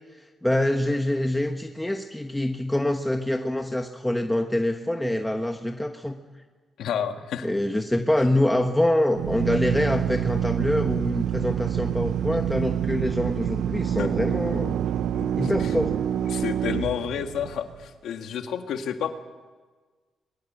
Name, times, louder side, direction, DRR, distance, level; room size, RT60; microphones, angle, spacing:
voice 1, 0.1-6.2 7.4-14.8 15.4-16.0, left 1 dB, 5° left, 4 dB, 1.3 m, -25 dB
voice 2, 6.8-7.5 14.0-14.1 15.1-15.7 16.2-19.1, left 8 dB, 85° left, 6 dB, 1.9 m, -30 dB
Drill, 9.1-17.7, right 10 dB, 85° right, 0.7 m, -27 dB
26.5 x 22.5 x 8.0 m, 1.4 s
cardioid pair, 105°, 0 cm